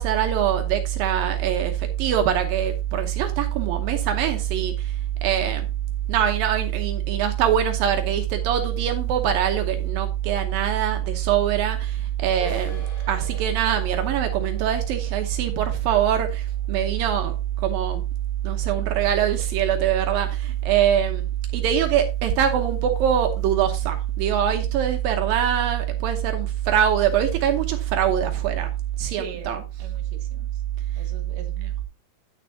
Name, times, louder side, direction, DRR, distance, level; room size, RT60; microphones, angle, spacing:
voice 1, 0.0-5.7 6.1-18.0 18.4-21.3 21.5-28.7 29.0-29.6 31.6-31.7, right 10 dB, 75° right, 2.6 m, -23 dB
sound 1, 12.4-17.9, left 1 dB, 20° left, 1.4 m, -44 dB
voice 2, 29.2-30.6 31.0-31.8, right 6 dB, 55° right, 2.4 m, -42 dB
9.8 x 9.4 x 2.7 m
omnidirectional pair, 4.2 m